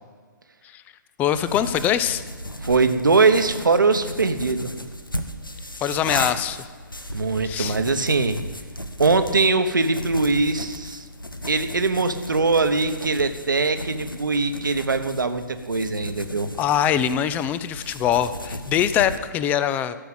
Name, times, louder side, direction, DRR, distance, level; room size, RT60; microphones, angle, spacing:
voice 1, 1.2-2.2 5.8-6.6 7.4-7.8 16.6-19.9, left 10 dB, 15° left, 14 dB, 0.5 m, -23 dB
sound 1, 1.3-19.2, equal, 90° left, 1.2 m, -35 dB
voice 2, 2.6-4.7 7.1-8.4 9.0-11.0 11.5-16.5, right 3 dB, 70° right, 9 dB, 1.2 m, -21 dB
13.5 x 6.9 x 8.4 m, 1.5 s
figure-of-eight pair, 125°, 11 cm